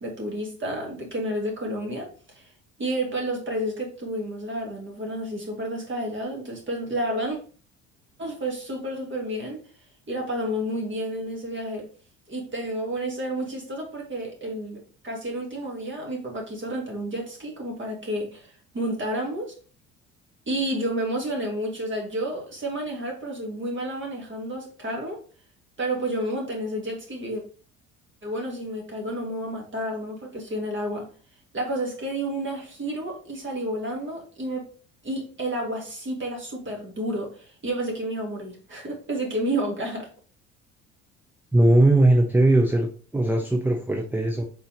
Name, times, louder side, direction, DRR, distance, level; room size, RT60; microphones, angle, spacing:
voice 1, 0.0-2.5 2.8-7.4 8.2-9.6 10.1-11.9 12.3-19.5 20.5-25.2 25.8-27.4 28.2-31.1 31.5-34.7 35.0-40.1, right 1 dB, 30° right, 0 dB, 2.0 m, -30 dB
voice 2, 41.5-44.4, right 1 dB, 5° right, 3 dB, 0.5 m, -19 dB
4.0 x 3.9 x 2.8 m, 0.40 s
hypercardioid pair, 60°, 37 cm